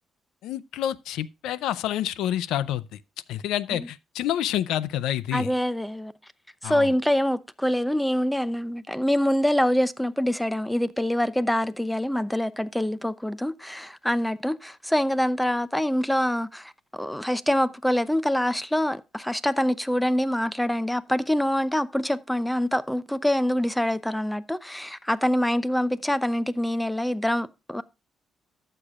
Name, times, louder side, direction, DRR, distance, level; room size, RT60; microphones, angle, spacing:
voice 1, 0.4-3.0 3.3-5.5 6.6-6.9, left 11 dB, 90° left, 0.5 m, -28 dB
voice 2, 5.3-6.1 6.6-27.8, equal, 5° left, 0.6 m, -25 dB
14.5 x 6.8 x 2.4 m
cardioid pair, 90°, 0 cm